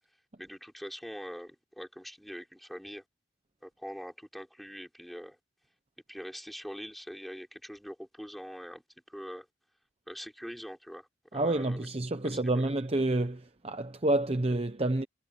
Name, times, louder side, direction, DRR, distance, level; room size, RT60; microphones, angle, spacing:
voice 1, 0.4-3.0 3.6-5.4 6.1-8.8 9.1-9.5 10.1-11.9 12.2-12.7, equal, ahead, 6.1 m, -43 dB
voice 2, 11.3-15.1, right 2 dB, 30° right, 0.9 m, -29 dB
head